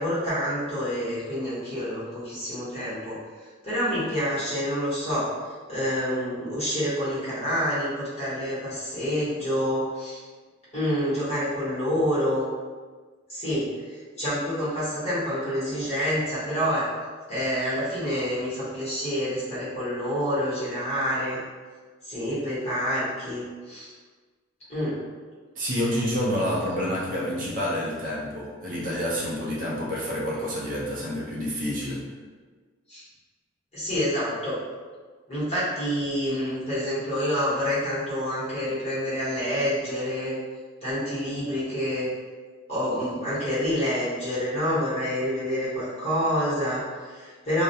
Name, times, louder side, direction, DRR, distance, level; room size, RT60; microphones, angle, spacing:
voice 1, 0.0-5.3 5.7-10.2 10.7-12.5 13.3-16.8 17.3-21.4 22.0-23.9 24.7-25.0 32.9-33.0 33.7-34.6 35.3-40.3 40.8-42.1 42.7-47.6, equal, 30° left, -11 dB, 1.1 m, -27 dB
voice 2, 25.6-32.0, equal, 40° right, -5 dB, 0.5 m, -28 dB
2.3 x 2.1 x 2.6 m, 1.5 s
head